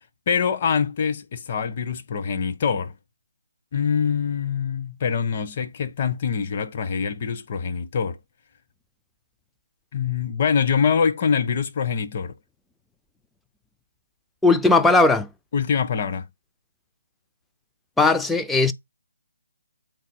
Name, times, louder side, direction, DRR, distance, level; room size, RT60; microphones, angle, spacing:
voice 1, 0.3-2.9 3.7-8.2 9.9-12.3 15.5-16.2, left 6 dB, 40° left, 1.2 m, -24 dB
voice 2, 14.4-15.3 18.0-18.7, left 3 dB, 5° left, 0.5 m, -17 dB
8.0 x 4.3 x 4.5 m
figure-of-eight pair, 145°, 0 cm